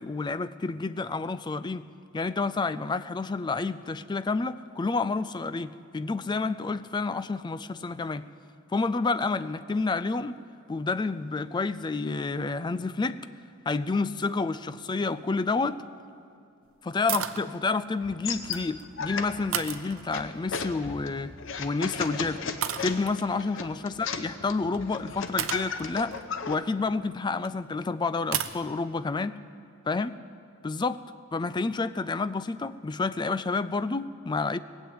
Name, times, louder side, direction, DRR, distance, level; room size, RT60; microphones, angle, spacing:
voice 1, 0.0-1.8 2.1-8.3 8.7-10.4 10.7-13.2 13.7-15.8 16.8-21.3 21.6-22.4 22.8-26.2 26.5-29.4 29.9-30.2 30.6-31.0 31.3-34.6, left 3 dB, 20° left, 14 dB, 0.4 m, -29 dB
sound 1, 17.1-17.4 18.3-18.9 19.5-20.4 21.7-21.9 22.6-23.2 24.7-24.8 25.4-27.5 28.3-28.6, right 9 dB, 80° right, 0.7 m, -33 dB
sound 2, 18.0-26.6, left 5 dB, 65° left, 0.9 m, -35 dB
19.0 x 7.4 x 8.6 m, 2.6 s
head